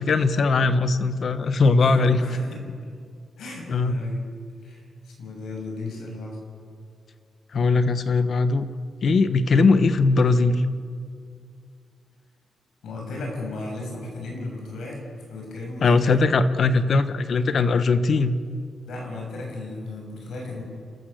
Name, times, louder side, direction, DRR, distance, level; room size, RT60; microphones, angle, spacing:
voice 1, 0.0-2.2 3.7-3.9 7.5-8.7 9.0-10.6 15.8-18.4, left 3 dB, 55° left, 11 dB, 1.2 m, -20 dB
voice 2, 1.8-2.7 3.4-4.2 4.6-6.4 12.8-15.0 15.3-16.2 18.9-20.6, left 2 dB, 90° left, 0 dB, 6.4 m, -35 dB
29.5 x 14.0 x 6.7 m, 2.2 s
cardioid pair, 115°, 0 cm